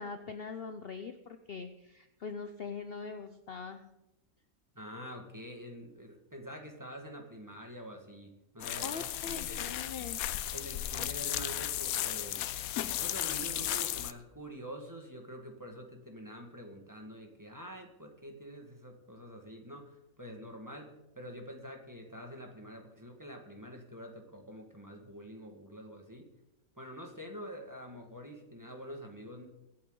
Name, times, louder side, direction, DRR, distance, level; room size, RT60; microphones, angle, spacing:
voice 1, 0.0-3.8 8.8-10.3, left 5 dB, 50° left, 8 dB, 0.8 m, -42 dB
voice 2, 4.8-9.7 10.5-12.5 12.9-26.3 26.7-29.5, equal, 15° right, 2 dB, 1.8 m, -46 dB
sound 1, 8.6-14.1, left 12 dB, 75° left, 1.1 m, -35 dB
24.0 x 8.7 x 3.9 m, 0.90 s
omnidirectional pair, 1.5 m